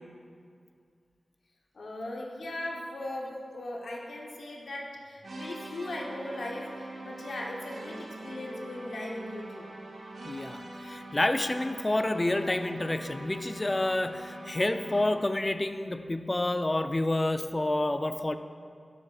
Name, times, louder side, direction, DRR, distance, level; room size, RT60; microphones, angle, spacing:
voice 1, 1.7-9.7, left 1 dB, 80° left, -2 dB, 0.8 m, -38 dB
sound 1, 5.2-15.3, right 1 dB, 75° right, 1.0 m, -43 dB
voice 2, 10.2-18.4, left 1 dB, 25° left, 9 dB, 0.3 m, -29 dB
10.5 x 7.4 x 2.3 m, 2.2 s
wide cardioid pair, 100°, 0 cm